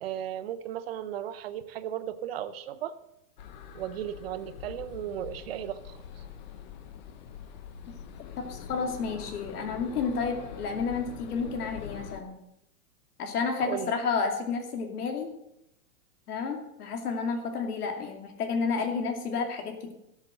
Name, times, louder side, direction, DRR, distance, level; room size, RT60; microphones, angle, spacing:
voice 1, 0.0-3.0 3.7-6.2 13.6-13.9, right 10 dB, 45° right, 13 dB, 0.7 m, -35 dB
sound 1, 3.4-12.2, left 8 dB, 30° left, 0.7 m, -44 dB
voice 2, 8.4-12.3 13.2-15.3 16.3-19.9, left 5 dB, 85° left, 4 dB, 2.6 m, -31 dB
13.5 x 7.5 x 6.4 m, 0.84 s
supercardioid pair, 175°, 44 cm